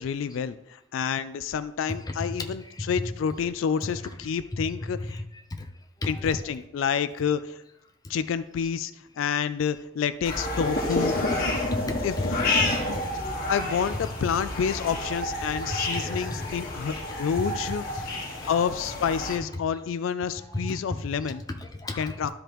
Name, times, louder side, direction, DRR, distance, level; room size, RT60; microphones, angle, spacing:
voice 1, 0.0-5.2 6.1-7.6 8.1-8.9 9.2-11.1 12.0-12.1 13.5-18.1 18.4-21.4 22.0-22.3, left 7 dB, 75° left, 13 dB, 0.3 m, -28 dB
sound 1, 10.2-19.4, left 2 dB, 50° left, 1.5 m, -29 dB
voice 2, 11.7-12.3 12.6-13.4 15.8-16.8 17.9-18.5 19.3-19.4 20.5-21.0 21.6-22.3, left 2 dB, 20° left, 4 dB, 0.7 m, -35 dB
12.5 x 5.0 x 3.0 m, 0.88 s
head